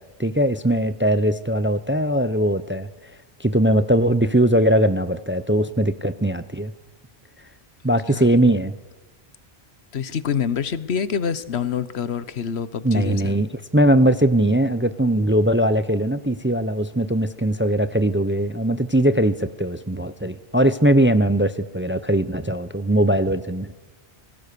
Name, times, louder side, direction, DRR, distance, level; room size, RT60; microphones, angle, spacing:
voice 1, 0.0-2.9 3.4-6.7 7.8-8.7 12.8-13.5 13.7-23.7, right 1 dB, 15° right, 13 dB, 0.5 m, -20 dB
voice 2, 9.9-13.3, left 7 dB, 85° left, 15 dB, 1.2 m, -26 dB
27.0 x 19.0 x 6.8 m, 1.2 s
omnidirectional pair, 1.1 m